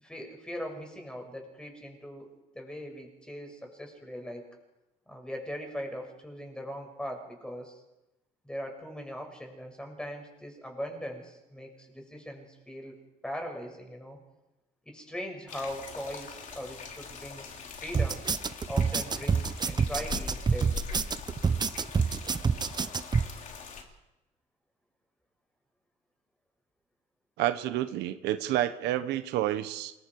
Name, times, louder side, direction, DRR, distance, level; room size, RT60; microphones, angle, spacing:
voice 1, 0.0-2.3 2.5-4.5 5.1-7.8 8.4-12.9 13.2-14.2 14.8-17.5 17.8-18.2 18.7-20.8, equal, 5° left, 2 dB, 6.7 m, -40 dB
sound 1, 15.5-23.8, left 5 dB, 50° left, 3.7 m, -42 dB
sound 2, 17.9-23.3, right 5 dB, 25° right, 0.8 m, -27 dB
voice 2, 27.4-29.9, right 13 dB, 85° right, 10 dB, 1.3 m, -29 dB
28.0 x 22.5 x 4.9 m, 0.97 s
cardioid pair, 110°, 17 cm